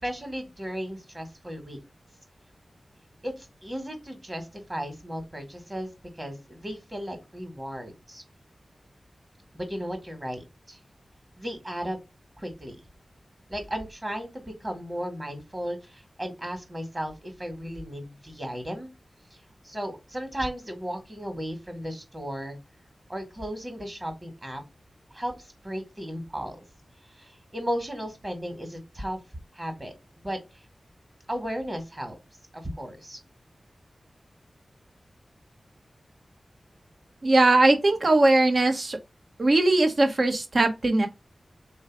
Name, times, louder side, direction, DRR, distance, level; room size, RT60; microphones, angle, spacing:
voice 1, 0.0-1.8 3.2-8.2 9.5-10.8 11.4-12.0 12.4-12.8 13.5-18.9 19.3-19.4 19.6-22.6 23.1-24.6 25.1-26.6 27.2-29.2 29.5-30.4 31.3-32.2 32.5-33.2, equal, 25° right, 2.0 m, -35 dB
voice 2, 37.2-39.0 39.4-41.1, right 2 dB, 55° right, 1.1 m, -20 dB
3.5 x 3.2 x 4.7 m
cardioid pair, 55°, 0 cm